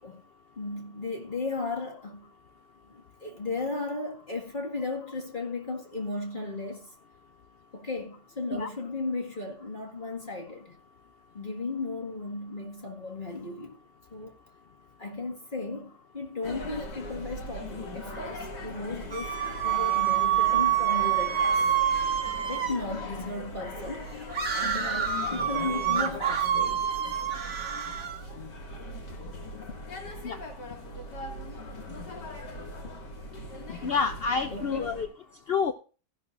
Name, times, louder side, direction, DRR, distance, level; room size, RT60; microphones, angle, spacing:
voice 1, 0.6-2.3 2.9-6.9 7.7-10.8 11.3-13.8 14.1-14.3 15.0-19.4 19.6-21.7 22.5-24.1 24.5-26.9 34.5-34.9, left 3 dB, 30° left, 2.0 m, -35 dB
sound 1, 16.4-35.1, left 1 dB, 80° left, 3.1 m, -40 dB
sound 2, 19.1-22.8 24.3-28.2, right 9 dB, 55° right, 2.1 m, -27 dB
voice 2, 33.8-35.1 35.5-35.7, left 5 dB, 65° left, 0.6 m, -28 dB
15.0 x 11.5 x 2.6 m
omnidirectional pair, 1.8 m